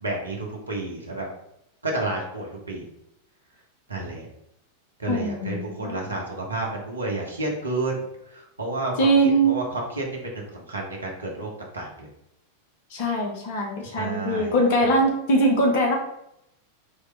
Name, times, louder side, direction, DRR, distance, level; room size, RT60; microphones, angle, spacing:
voice 1, 0.0-1.3 1.8-2.8 3.9-4.3 5.0-8.1 8.3-9.1 9.4-12.1 14.0-14.9, right 2 dB, 75° right, -1 dB, 1.1 m, -30 dB
voice 2, 5.1-6.0 9.0-9.6 12.9-16.0, right 2 dB, 50° left, 1 dB, 1.2 m, -22 dB
4.7 x 3.2 x 3.4 m, 0.79 s
figure-of-eight pair, 90°, 0 cm